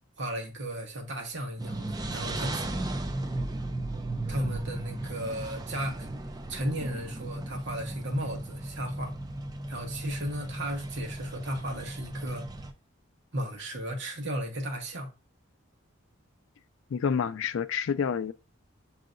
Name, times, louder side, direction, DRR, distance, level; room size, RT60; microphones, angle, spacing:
voice 1, 0.2-2.6 4.3-6.1 6.5-9.2 9.7-12.5 13.3-15.1, equal, 55° right, 1.1 m, -35 dB
sound 1, 1.6-12.7, right 2 dB, 20° right, 0.4 m, -36 dB
voice 2, 16.9-18.3, left 6 dB, 65° left, 0.3 m, -28 dB
7.6 x 2.8 x 2.5 m
head